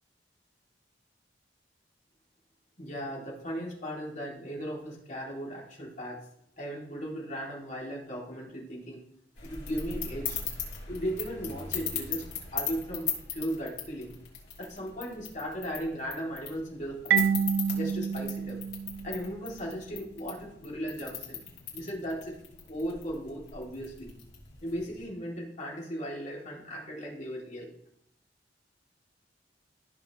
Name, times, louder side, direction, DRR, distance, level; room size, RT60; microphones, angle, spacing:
voice 1, 2.8-6.2 6.6-9.0 9.4-10.4 10.9-12.2 12.5-14.1 14.6-17.3 17.7-18.6 19.0-21.4 21.7-22.4 22.7-24.1 24.6-27.7, equal, 45° left, -3 dB, 2.9 m, -37 dB
sound 1, 9.3-25.0, left 7 dB, 80° left, 3.3 m, -40 dB
Marimba xylophone, 17.1-19.7, right 7 dB, 85° right, 0.3 m, -29 dB
14.5 x 6.4 x 3.1 m, 0.71 s
head